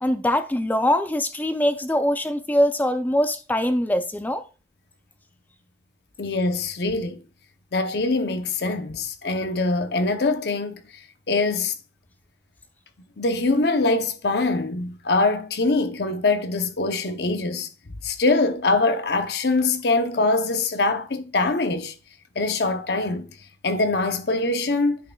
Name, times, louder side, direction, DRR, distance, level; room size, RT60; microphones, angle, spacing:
voice 1, 0.0-4.4, left 1 dB, 10° left, 0.3 m, -22 dB
voice 2, 6.2-7.2 7.7-11.7 13.2-17.7 18.0-21.9 22.4-23.3 23.6-25.0, left 3 dB, 65° left, 0.7 m, -23 dB
10.0 x 6.0 x 2.3 m
head